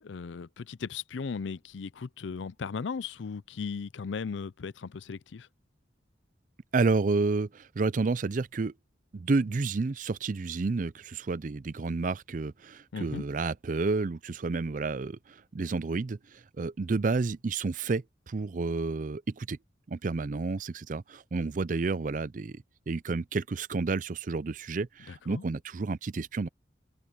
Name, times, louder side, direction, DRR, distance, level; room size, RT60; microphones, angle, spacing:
voice 1, 0.0-5.5 12.9-13.2 25.1-25.4, left 5 dB, 85° left, 0.5 m, -37 dB
voice 2, 6.7-8.7 9.1-19.6 19.9-26.5, right 3 dB, 45° right, 0.4 m, -30 dB
open air
head